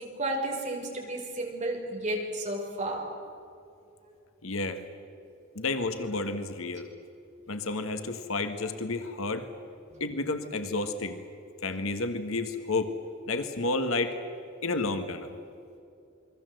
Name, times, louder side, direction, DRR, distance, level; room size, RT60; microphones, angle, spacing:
voice 1, 0.0-3.1 9.9-10.0, right 1 dB, 35° right, 1 dB, 5.3 m, -32 dB
voice 2, 4.4-4.8 5.5-6.9 7.5-9.5 10.0-11.2 11.6-12.9 13.3-14.2 14.6-15.3, left 3 dB, 80° left, 8 dB, 1.7 m, -31 dB
29.0 x 22.0 x 8.0 m, 2.6 s
head